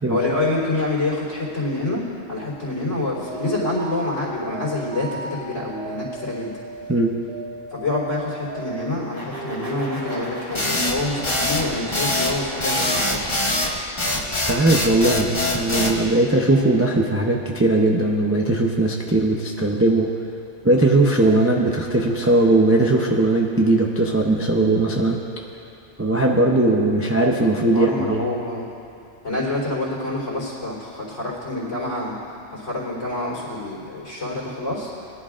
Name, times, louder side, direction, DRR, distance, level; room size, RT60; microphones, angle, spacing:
voice 1, 0.1-2.0 2.3-6.5 7.7-13.2 27.7-28.7 29.2-32.2 32.5-35.1, left 2 dB, 75° left, -5 dB, 3.9 m, -27 dB
sound 1, 3.2-8.9 9.3-10.8, right 2 dB, 50° right, 1.9 m, -36 dB
sound 2, 8.8-13.8, equal, 70° right, 2.7 m, -36 dB
sound 3, 10.5-16.0, left 1 dB, 25° left, 1.0 m, -23 dB
voice 2, 14.5-20.1 20.6-25.2 26.0-28.2, right 2 dB, 15° right, -1 dB, 0.5 m, -19 dB
21.5 x 11.5 x 2.5 m, 2.6 s
omnidirectional pair, 1.3 m